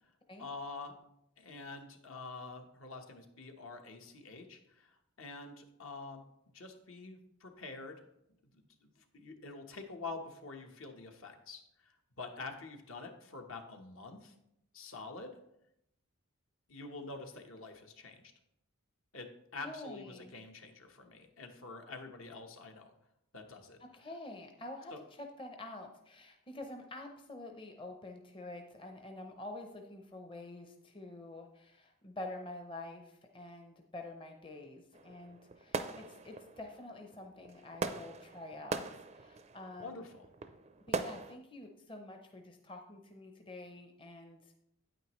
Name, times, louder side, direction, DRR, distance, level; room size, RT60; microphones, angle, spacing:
voice 1, 0.4-0.9 1.4-6.2 6.5-8.0 8.5-14.3 14.7-15.3 16.7-18.2 19.1-22.9 23.3-23.8 24.9-25.0 39.8-40.2, left 3 dB, 70° left, 4 dB, 1.1 m, -47 dB
voice 2, 19.6-20.3 23.8-38.8 39.1-40.0 40.9-44.5, left 2 dB, 25° left, 4 dB, 0.6 m, -47 dB
sound 1, 34.9-41.4, right 4 dB, 30° right, 0.4 m, -42 dB
9.0 x 8.9 x 3.1 m, 0.80 s
head